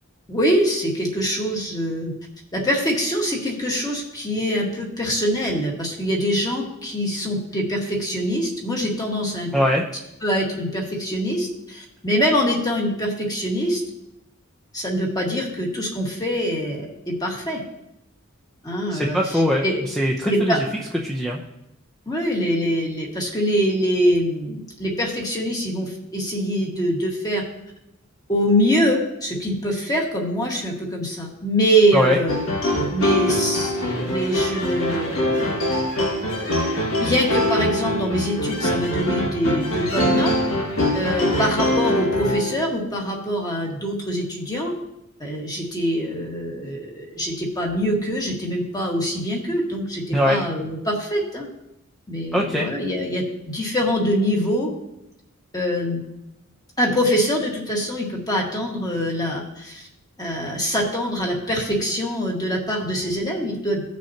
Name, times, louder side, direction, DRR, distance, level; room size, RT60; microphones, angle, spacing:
voice 1, 0.3-2.1 2.5-9.5 10.2-13.8 14.7-17.6 18.6-19.8 20.2-20.6 22.0-27.4 28.3-32.4 32.9-35.6 36.2-40.3 40.9-44.7 45.2-51.5 52.1-54.7 55.5-56.0 56.8-59.9 60.2-63.8, equal, 20° left, -1 dB, 1.7 m, -24 dB
voice 2, 9.5-9.8 18.9-20.6 21.0-21.4 31.9-32.2 50.1-50.4 52.3-52.7, equal, 5° left, -2 dB, 0.7 m, -21 dB
sound 1, 32.3-42.7, left 1 dB, 80° left, 1.8 m, -23 dB
16.0 x 6.2 x 2.9 m, 0.86 s
head